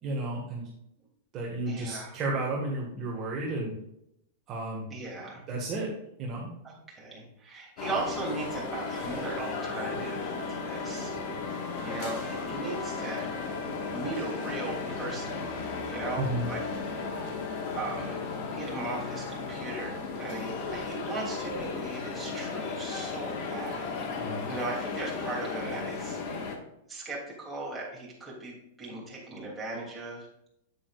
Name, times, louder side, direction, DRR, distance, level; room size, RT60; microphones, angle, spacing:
voice 1, 0.0-0.7 1.3-3.7 4.5-4.9 5.5-5.9 6.2-6.5 16.2-16.5 24.2-24.4, right 2 dB, 25° right, -3 dB, 1.8 m, -32 dB
voice 2, 1.7-2.2 4.9-5.4 6.6-11.1 11.8-15.5 15.8-16.6 17.7-18.2 18.5-23.9 24.5-26.5 26.9-30.3, right 2 dB, 10° right, -5 dB, 3.0 m, -38 dB
sound 1, 7.8-26.6, left 4 dB, 45° left, 1.6 m, -35 dB
8.8 x 8.7 x 2.5 m, 0.79 s
supercardioid pair, 160°, 0 cm